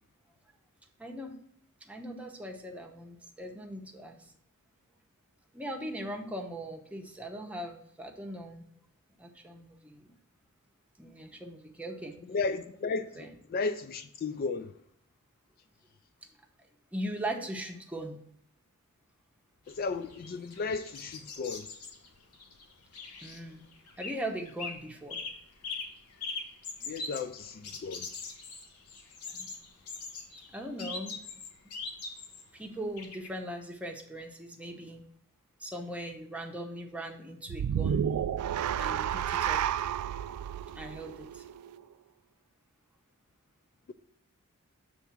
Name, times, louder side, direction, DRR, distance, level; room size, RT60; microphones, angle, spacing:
voice 1, 1.0-1.4 1.8-4.3 5.5-8.6 9.2-10.1 11.0-12.2 13.1-13.3 16.9-18.2 23.2-23.6 24.0-25.2 29.3-29.5 30.5-31.2 32.5-35.0 35.6-38.1 38.8-39.6 40.7-41.4, right 1 dB, 5° right, 0.8 m, -40 dB
voice 2, 12.3-14.7 19.7-21.7 26.8-28.1, left 4 dB, 40° left, 0.3 m, -34 dB
sound 1, 19.7-24.2 24.5-24.8 25.1-32.5 33.0-33.3, left 4 dB, 85° left, 1.0 m, -42 dB
sound 2, 37.5-41.8, right 9 dB, 85° right, 0.3 m, -31 dB
7.1 x 3.5 x 5.7 m
head